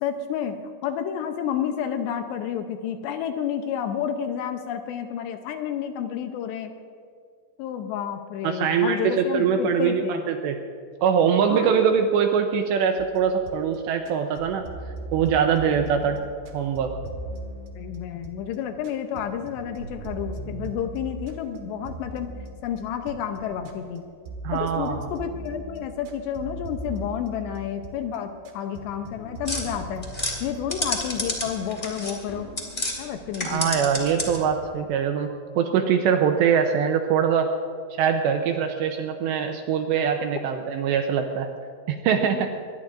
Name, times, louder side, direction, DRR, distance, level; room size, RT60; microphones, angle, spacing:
voice 1, 0.0-6.7 7.6-10.2 11.5-11.8 17.8-22.3 22.6-24.1 24.5-30.1 30.4-32.5 33.0-33.8 42.2-42.5, left 8 dB, 80° left, 6 dB, 2.6 m, -30 dB
voice 2, 8.4-10.6 11.0-14.6 15.1-16.2 16.5-16.9 24.4-25.0 33.4-35.3 35.6-37.5 38.0-41.5 41.9-42.5, right 7 dB, 85° right, 5 dB, 2.6 m, -23 dB
sound 1, 13.0-13.8 14.1-18.5 18.8-24.0 24.3-28.2 28.4-31.5, right 2 dB, 65° right, 3.0 m, -39 dB
sound 2, 29.4-33.0 33.3-34.5, left 1 dB, 15° left, 1.4 m, -30 dB
24.5 x 20.5 x 2.6 m, 2.1 s
omnidirectional pair, 5.7 m